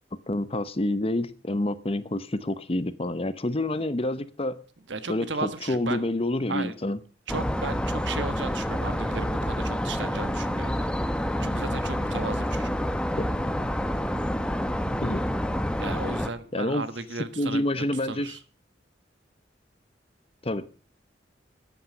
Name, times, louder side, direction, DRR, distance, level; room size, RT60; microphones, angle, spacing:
voice 1, 0.3-4.6 5.1-7.0 13.1-13.3 15.0-15.3 16.5-16.8 17.4-18.3 20.4-20.6, left 1 dB, 30° left, 14 dB, 0.8 m, -28 dB
voice 2, 4.9-6.1 6.5-6.8 7.3-12.7 15.8-18.4, right 3 dB, 80° right, 11 dB, 1.4 m, -35 dB
sound 1, 7.3-16.3, equal, 5° left, 0.8 m, -28 dB
13.5 x 8.8 x 6.4 m, 0.38 s
head